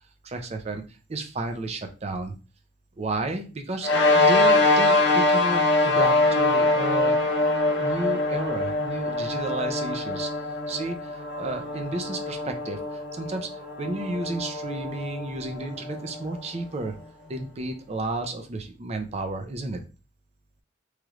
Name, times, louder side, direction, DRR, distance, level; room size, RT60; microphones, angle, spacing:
voice 1, 0.2-0.8 1.1-2.3 3.0-7.2 7.8-10.3 10.7-13.5 13.8-16.9 17.3-19.8, right 2 dB, 35° right, 5 dB, 0.4 m, -32 dB
sound 1, 3.8-16.6, left 2 dB, 60° left, 0.7 m, -24 dB
3.1 x 3.0 x 2.4 m, 0.33 s
head